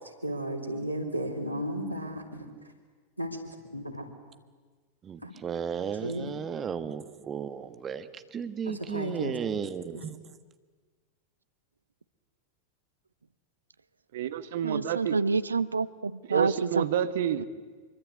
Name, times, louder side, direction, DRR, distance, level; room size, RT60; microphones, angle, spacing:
voice 1, 0.2-2.5 3.2-4.1 5.2-5.3 6.0-6.3 8.6-9.6 9.9-10.0, equal, 90° left, 3 dB, 3.6 m, -34 dB
voice 2, 5.0-8.1 8.3-10.1, right 7 dB, 25° right, 10 dB, 1.5 m, -34 dB
voice 3, 14.1-15.2 16.3-17.5, right 10 dB, 55° right, 12 dB, 1.4 m, -29 dB
voice 4, 14.6-16.8 17.4-17.5, right 4 dB, 75° right, 16 dB, 0.8 m, -28 dB
25.0 x 24.0 x 8.3 m, 1.4 s
figure-of-eight pair, 90°, 0 cm